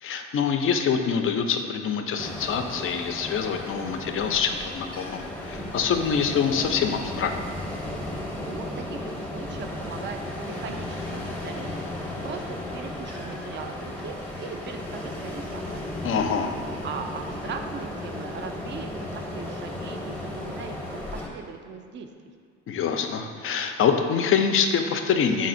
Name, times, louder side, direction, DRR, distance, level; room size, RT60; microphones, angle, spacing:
voice 1, 0.0-7.3 16.0-16.5 22.7-25.5, left 6 dB, 40° left, 6 dB, 0.4 m, -25 dB
Ocean, 2.2-21.3, left 1 dB, 5° left, 0.7 m, -35 dB
voice 2, 8.4-11.8 12.2-15.9 16.3-16.5 16.8-22.1, right 5 dB, 35° right, 6 dB, 0.4 m, -39 dB
4.0 x 3.7 x 2.5 m, 2.2 s
hypercardioid pair, 60°, 35 cm